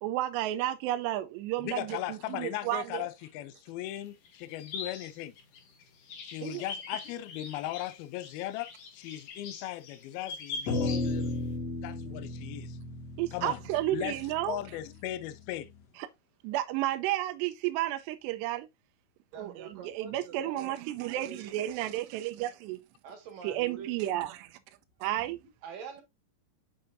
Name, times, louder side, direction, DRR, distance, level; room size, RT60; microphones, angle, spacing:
voice 1, 0.0-3.1 6.4-6.6 13.2-14.6 16.4-18.7 19.4-22.8 23.4-24.6 25.0-25.4, right 14 dB, 85° right, 2.7 m, -32 dB
voice 2, 1.6-5.4 6.2-11.3 11.8-12.8 13.3-13.6 13.9-14.2 14.4-15.7, left 14 dB, 85° left, 2.2 m, -38 dB
sound 1, 3.9-11.4, left 4 dB, 65° left, 2.3 m, -43 dB
sound 2, 10.7-15.2, left 2 dB, 45° left, 2.5 m, -34 dB
voice 3, 19.3-21.8 23.0-24.2 25.2-26.0, right 7 dB, 60° right, 3.0 m, -46 dB
8.5 x 5.6 x 2.6 m
omnidirectional pair, 5.0 m